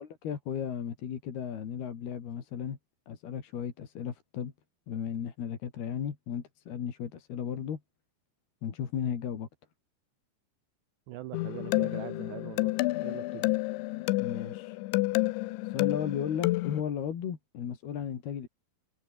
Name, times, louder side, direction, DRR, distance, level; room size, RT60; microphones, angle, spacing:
voice 1, 0.0-2.8 3.1-4.5 4.9-7.8 8.6-9.5 14.2-14.8 15.6-18.5, left 8 dB, 60° left, 4.6 m, -35 dB
voice 2, 11.1-12.7 13.0-13.5, right 15 dB, 75° right, 3.1 m, -42 dB
sound 1, 11.3-16.8, left 20 dB, 85° left, 3.0 m, -30 dB
omnidirectional pair, 5.4 m